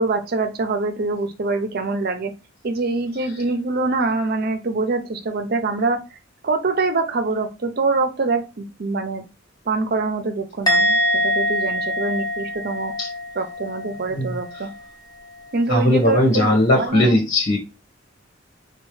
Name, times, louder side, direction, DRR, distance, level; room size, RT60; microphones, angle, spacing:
voice 1, 0.0-2.3 2.6-6.2 6.4-9.2 9.7-12.9 13.3-14.7 15.5-17.2, right 3 dB, 50° right, 7 dB, 0.6 m, -24 dB
Musical instrument, 10.7-14.1 14.3-14.7, equal, 20° left, 0.7 m, -23 dB
voice 2, 15.7-17.6, left 1 dB, 60° left, 0 dB, 1.4 m, -18 dB
4.4 x 2.3 x 3.2 m, 0.28 s
head